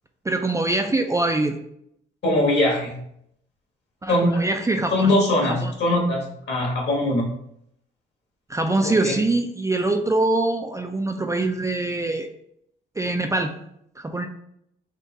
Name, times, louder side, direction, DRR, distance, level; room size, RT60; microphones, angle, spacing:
voice 1, 0.2-1.6 4.0-5.1 5.5-5.7 8.5-12.3 13.0-13.5 14.0-14.3, right 2 dB, 15° right, 4 dB, 0.4 m, -23 dB
voice 2, 2.2-2.9 4.1-4.5 4.9-7.3 8.8-9.1, left 1 dB, 60° left, -1 dB, 1.6 m, -21 dB
3.7 x 2.6 x 4.0 m, 0.74 s
cardioid pair, 90°, 20 cm